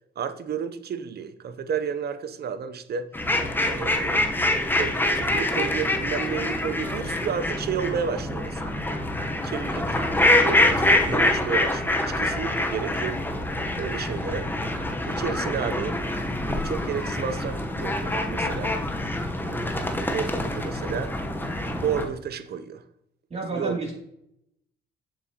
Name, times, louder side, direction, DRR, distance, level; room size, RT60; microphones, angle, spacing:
voice 1, 0.2-3.1 3.6-4.2 4.8-8.7 9.4-13.2 13.8-14.5 15.1-16.0 16.5-18.7 19.5-21.1 21.8-22.8 23.5-23.8, right 7 dB, 55° right, 10 dB, 0.7 m, -32 dB
sound 1, 3.1-22.1, left 1 dB, 10° left, 1.0 m, -25 dB
voice 2, 23.3-23.9, right 3 dB, 30° right, -2 dB, 2.8 m, -30 dB
7.5 x 6.8 x 2.9 m, 0.77 s
cardioid pair, 90°, 20 cm